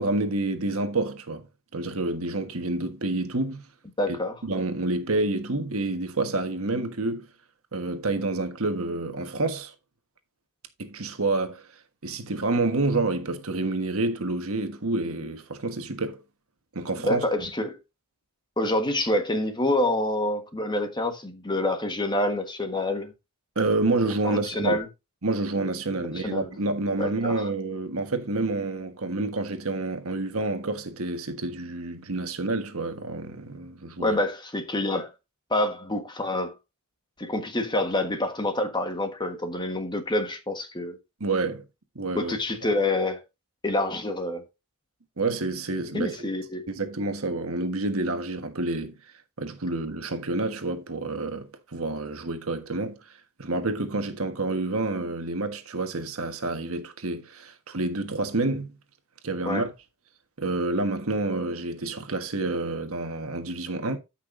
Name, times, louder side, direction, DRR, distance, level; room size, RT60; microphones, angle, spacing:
voice 1, 0.0-1.5 1.7-3.6 4.1-4.2 4.4-7.3 7.7-9.7 10.8-11.6 12.0-16.2 16.7-17.5 23.5-24.8 25.2-34.2 41.2-41.6 41.9-42.3 45.2-46.1 46.7-49.0 49.4-53.0 53.4-58.7 59.2-59.7 60.4-64.0, right 2 dB, 70° right, 1.4 m, -28 dB
voice 2, 4.0-4.4 17.0-17.8 18.6-23.1 24.2-24.8 26.1-26.5 27.0-27.5 34.0-35.1 35.5-36.5 37.2-41.0 42.1-43.2 43.6-44.4 45.9-46.6 59.4-59.7, left 1 dB, 20° left, 1.4 m, -27 dB
14.0 x 6.0 x 2.6 m
head